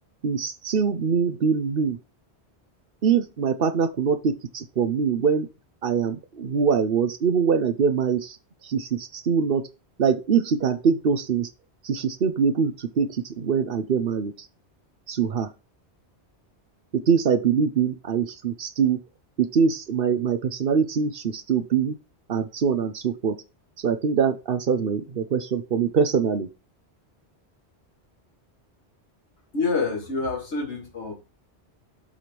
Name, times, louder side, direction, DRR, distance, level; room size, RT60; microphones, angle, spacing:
voice 1, 0.2-2.0 3.0-5.5 5.8-8.4 8.6-9.7 10.0-11.5 11.8-14.3 15.1-15.5 16.9-19.0 19.4-21.9 22.3-23.4 23.8-26.5, right 6 dB, 60° right, 1.0 m, -23 dB
voice 2, 29.5-31.1, left 4 dB, 85° left, 2.0 m, -27 dB
7.4 x 3.5 x 6.1 m
omnidirectional pair, 1.1 m